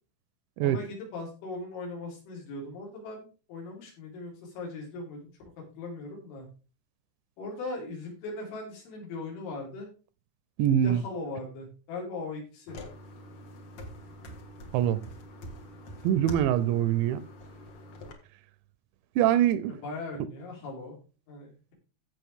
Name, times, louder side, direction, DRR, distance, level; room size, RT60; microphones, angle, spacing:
voice 1, 0.6-5.3 5.7-6.5 7.4-9.9 10.8-12.8 19.7-21.0 21.3-21.7, left 3 dB, 80° left, 6.5 m, -39 dB
voice 2, 10.6-11.0 14.7-15.0 16.0-17.2 19.2-19.7, right 11 dB, 80° right, 2.7 m, -23 dB
sound 1, 12.7-18.1, equal, 55° left, 1.8 m, -44 dB
15.5 x 5.6 x 3.6 m
omnidirectional pair, 5.4 m